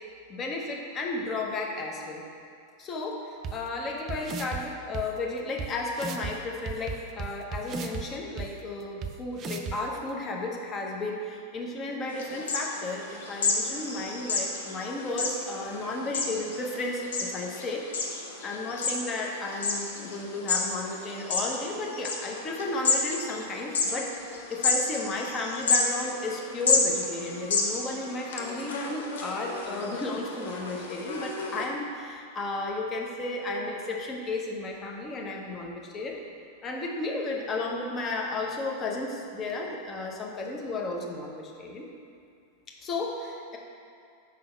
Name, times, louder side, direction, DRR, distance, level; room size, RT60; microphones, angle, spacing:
voice 1, 0.3-2.2 2.8-17.9 18.4-36.2 36.6-41.9 42.8-43.6, left 2 dB, 25° left, 0 dB, 0.8 m, -33 dB
sound 1, 3.4-3.5 4.1-4.6 4.9-5.0 5.6-5.7 6.0-6.3 6.7-8.0 8.4-8.5 9.0-9.1 9.4-9.8, right 5 dB, 30° right, 0.4 m, -34 dB
sound 2, 12.1-31.7, left 4 dB, 60° left, 0.7 m, -31 dB
5.0 x 3.8 x 5.6 m, 2.4 s
figure-of-eight pair, 90°, 0 cm